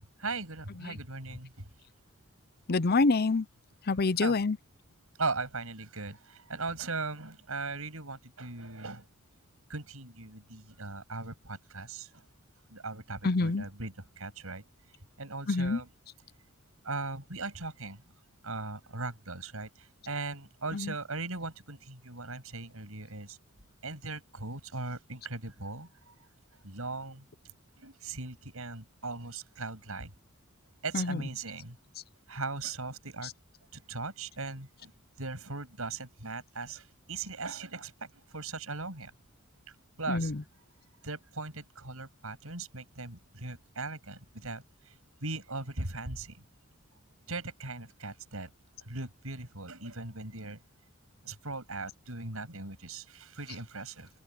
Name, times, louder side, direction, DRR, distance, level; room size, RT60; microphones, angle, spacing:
voice 1, 0.2-1.7 4.2-4.4 5.2-9.1 9.7-12.2 12.7-14.6 15.2-15.9 16.8-18.0 18.4-23.4 23.8-26.3 26.6-27.3 27.8-30.1 30.8-31.8 32.3-33.3 33.7-34.9 35.2-39.1 40.0-40.3 41.0-44.9 45.2-46.4 47.3-48.5 48.9-50.6 51.2-54.1, right 3 dB, 75° right, 7.9 m, -39 dB
voice 2, 2.7-3.5 3.9-4.6 13.2-13.6 15.5-15.8 20.7-20.9 30.9-31.2 40.1-40.4, left 3 dB, 45° left, 0.7 m, -26 dB
open air
head